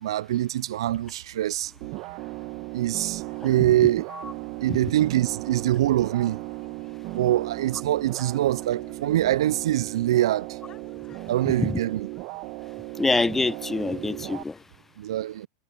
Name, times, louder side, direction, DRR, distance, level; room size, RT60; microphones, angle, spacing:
voice 1, 0.0-1.7 2.7-4.1 4.6-6.4 7.1-10.6 11.3-12.1 15.0-15.5, right 13 dB, 75° right, 0.4 m, -24 dB
sound 1, 1.8-14.4, right 22 dB, 50° right, 1.5 m, -36 dB
sound 2, 3.1-14.7, left 9 dB, 30° left, 4.1 m, -58 dB
voice 2, 13.0-14.6, left 3 dB, 10° left, 0.4 m, -25 dB
hypercardioid pair, 115°, 3 cm